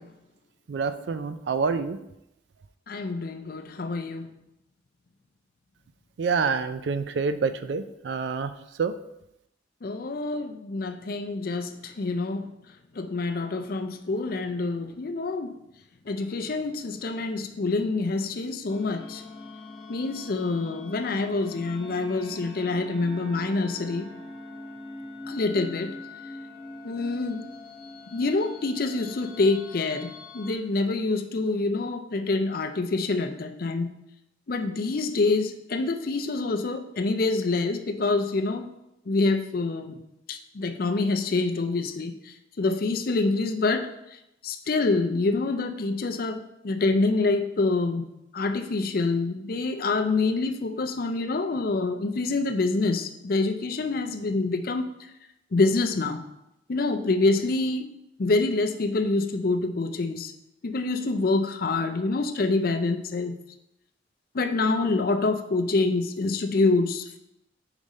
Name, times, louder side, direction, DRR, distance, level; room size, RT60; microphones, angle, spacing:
voice 1, 0.7-2.0 6.2-8.5 8.8-8.9, right 5 dB, 65° right, 11 dB, 0.4 m, -27 dB
voice 2, 2.9-4.3 9.8-12.5 13.0-15.5 16.1-19.2 19.9-24.1 25.3-25.9 26.8-27.4 28.1-33.9 34.5-38.7 39.1-40.0 40.3-42.1 42.6-43.9 44.4-48.1 48.3-54.8 55.5-56.2 56.7-57.9 58.2-60.3 60.6-63.4 64.3-67.2, left 3 dB, 50° left, 6 dB, 0.5 m, -26 dB
sound 1, 18.7-30.5, left 2 dB, 25° left, 1.0 m, -43 dB
5.2 x 4.9 x 4.1 m, 0.85 s
head